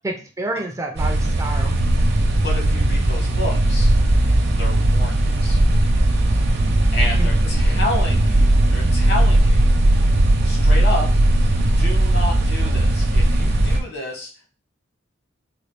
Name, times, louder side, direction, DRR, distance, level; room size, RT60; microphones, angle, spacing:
voice 1, 0.4-1.8 6.6-7.8, right 1 dB, 15° right, 3 dB, 0.4 m, -31 dB
sound 1, 1.0-13.8, right 1 dB, 55° right, 0.7 m, -17 dB
voice 2, 2.4-3.9 4.5-5.6 6.9-9.8 10.4-11.1 11.8-14.5, left 1 dB, 55° left, 0 dB, 1.1 m, -30 dB
4.0 x 2.3 x 3.3 m, 0.36 s
head